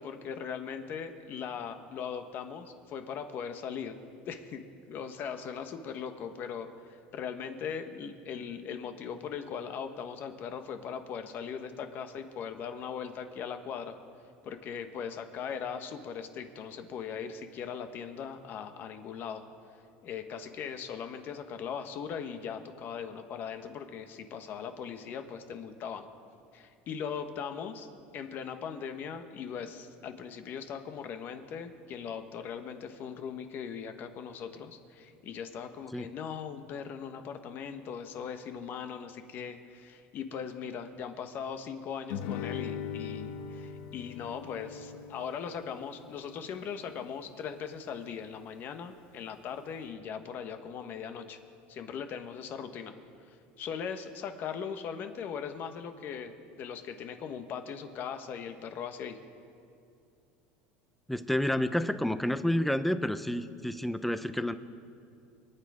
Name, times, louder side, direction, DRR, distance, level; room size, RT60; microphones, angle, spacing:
voice 1, 0.0-4.0 4.3-13.9 14.4-19.4 20.0-26.1 26.5-27.9 28.1-51.4 51.7-52.9 53.3-59.2, left 7 dB, 45° left, 7 dB, 1.3 m, -39 dB
Guitar, 42.1-47.2, left 7 dB, 75° left, 1.1 m, -41 dB
voice 2, 61.1-64.5, left 1 dB, ahead, 11 dB, 0.6 m, -29 dB
26.0 x 9.6 x 4.9 m, 2.5 s
supercardioid pair, 130°, 5 cm